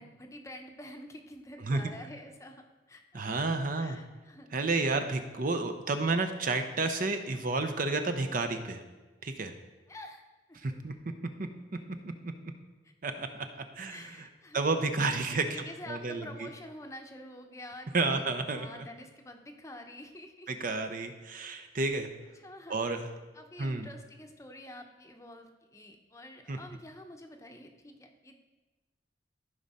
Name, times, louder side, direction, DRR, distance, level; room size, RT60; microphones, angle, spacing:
voice 1, 0.0-3.2 3.7-4.5 9.9-10.2 10.5-10.6 13.9-14.6 15.0-18.2 18.5-20.5 22.4-22.8 23.3-28.4, left 1 dB, 15° left, 4 dB, 0.8 m, -48 dB
voice 2, 3.1-4.0 4.5-8.8 9.2-9.5 10.6-10.9 11.4-11.5 12.2-12.3 13.0-13.3 13.8-14.3 14.5-16.5 17.9-18.9 20.5-22.1 22.7-23.1 23.6-23.9 26.5-26.6, right 3 dB, 50° right, 7 dB, 0.7 m, -31 dB
14.0 x 5.2 x 4.2 m, 1.2 s
head